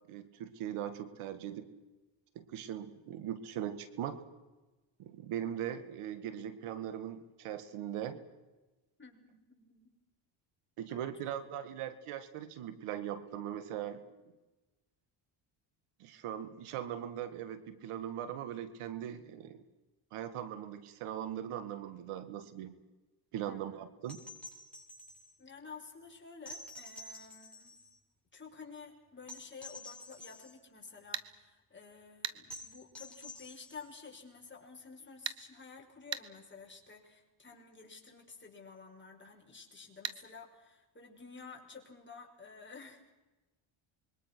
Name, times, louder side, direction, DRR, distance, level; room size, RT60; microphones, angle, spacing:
voice 1, 0.1-1.7 2.4-4.2 5.0-8.2 10.8-14.0 16.0-19.6 20.1-22.8 23.3-24.2, right 10 dB, 85° right, 12 dB, 2.1 m, -40 dB
voice 2, 9.0-9.9 10.9-11.8 23.5-23.9 25.4-27.8 28.3-43.1, left 5 dB, 20° left, 1 dB, 6.0 m, -52 dB
sound 1, 24.0-25.3 26.5-28.0 29.3-30.6 32.5-33.9 35.8-35.9, left 1 dB, ahead, 7.9 m, -49 dB
sound 2, 31.1-31.3 32.2-32.4 35.3-35.4 36.1-36.3 40.0-40.2, right 10 dB, 60° right, 1.7 m, -37 dB
26.5 x 23.0 x 6.3 m, 1.1 s
cardioid pair, 90°, 49 cm